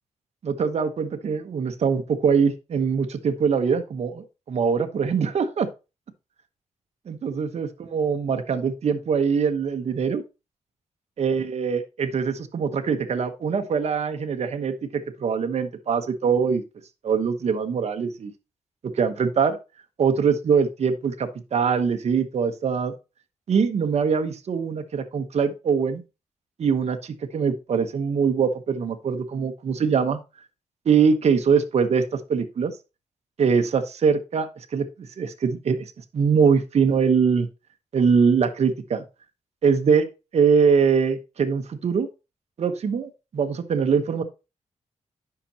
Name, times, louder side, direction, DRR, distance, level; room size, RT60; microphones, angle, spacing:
voice 1, 0.4-5.7 7.1-10.2 11.2-16.6 17.0-18.3 18.9-19.6 20.0-22.9 23.5-26.0 26.6-30.2 30.8-32.8 33.4-37.5 37.9-39.0 39.6-42.1 42.6-44.2, right 6 dB, 60° right, 6 dB, 1.1 m, -23 dB
10.0 x 5.9 x 2.9 m, 0.28 s
cardioid pair, 100°, 12 cm